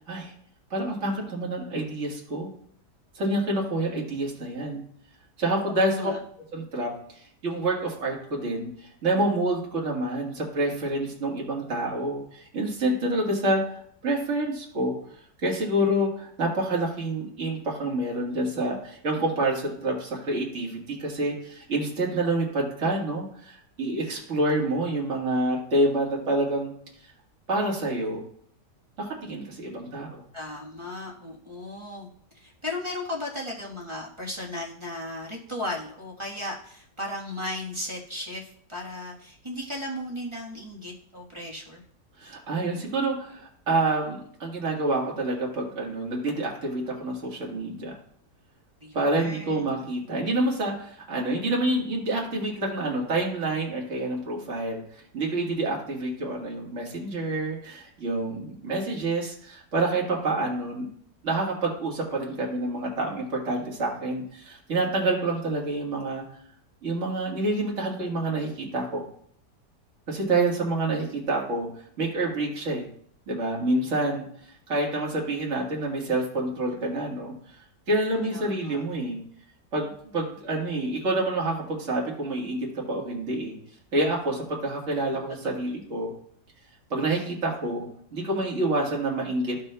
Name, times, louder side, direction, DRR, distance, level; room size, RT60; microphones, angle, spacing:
voice 1, 0.7-2.5 3.2-4.8 5.4-6.1 6.5-6.9 7.4-15.0 15.4-26.7 27.5-28.2 29.0-30.2 42.2-48.0 48.9-60.9 61.2-66.2 66.8-69.0 70.1-71.7 72.0-72.8 73.3-74.3 74.7-77.3 77.9-79.2 79.7-83.6 83.9-86.1 86.9-89.6, right 2 dB, 45° right, -2 dB, 1.9 m, -27 dB
voice 2, 5.7-6.2 30.3-32.1 32.3-41.8 48.8-49.7 78.3-78.8 85.1-85.5, left 1 dB, 20° right, -3 dB, 1.1 m, -36 dB
14.0 x 5.3 x 2.2 m, 0.64 s
omnidirectional pair, 1.8 m